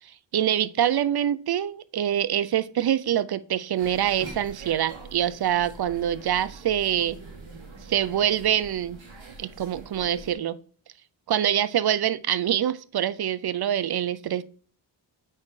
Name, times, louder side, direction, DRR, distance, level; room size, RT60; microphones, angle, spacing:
voice 1, 0.3-7.2 7.9-9.0 9.4-10.6 11.3-14.4, right 10 dB, 55° right, 0.5 m, -25 dB
Scottish Restaurant, 3.8-10.3, right 3 dB, 75° right, 1.9 m, -44 dB
8.5 x 4.4 x 3.2 m
cardioid pair, 45°, 46 cm